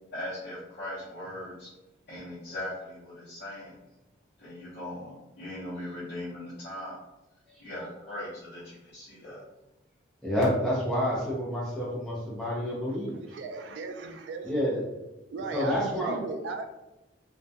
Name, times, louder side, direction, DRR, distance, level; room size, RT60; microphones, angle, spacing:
voice 1, 0.1-1.7 2.1-3.8 4.4-7.0 7.6-9.4, left 1 dB, 55° left, -12 dB, 0.8 m, -39 dB
voice 2, 10.2-13.1 14.4-14.8 15.5-16.2, equal, 5° left, -7 dB, 0.6 m, -28 dB
voice 3, 13.1-14.5 15.3-16.6, right 4 dB, 70° right, 6 dB, 0.3 m, -36 dB
2.3 x 2.2 x 2.7 m, 1.0 s
head